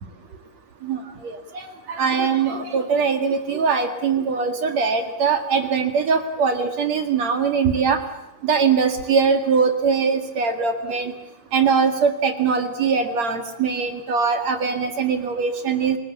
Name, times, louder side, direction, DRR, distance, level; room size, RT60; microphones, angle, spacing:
voice 1, 0.8-8.0 8.4-11.1 11.5-16.0, right 5 dB, 50° right, 7 dB, 2.4 m, -22 dB
29.5 x 19.0 x 8.3 m, 0.86 s
omnidirectional pair, 5.2 m